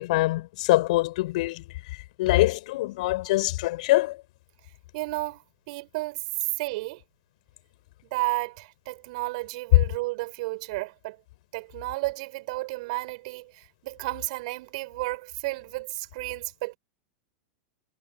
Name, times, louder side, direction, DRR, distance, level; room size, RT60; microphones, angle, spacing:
voice 1, 0.0-1.6 2.2-4.2, left 18 dB, 60° left, 3.7 m, -24 dB
voice 2, 4.9-5.4 5.7-6.2 6.6-7.0 8.1-11.2 11.5-16.8, right 22 dB, 55° right, 5.1 m, -32 dB
figure-of-eight pair, 95°, 5 cm